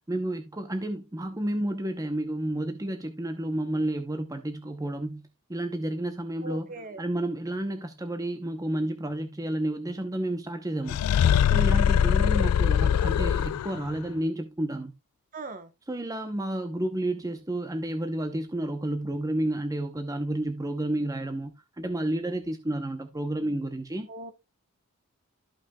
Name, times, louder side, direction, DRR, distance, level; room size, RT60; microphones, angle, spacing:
voice 1, 0.1-6.7 7.0-11.0 11.4-14.9 15.9-24.1, right 1 dB, 15° right, 0.7 m, -31 dB
voice 2, 6.4-7.0 15.3-15.7 24.1-24.3, right 2 dB, 40° right, 1.0 m, -39 dB
sound 1, 10.9-13.9, left 9 dB, 85° left, 0.3 m, -22 dB
13.5 x 5.8 x 2.2 m
head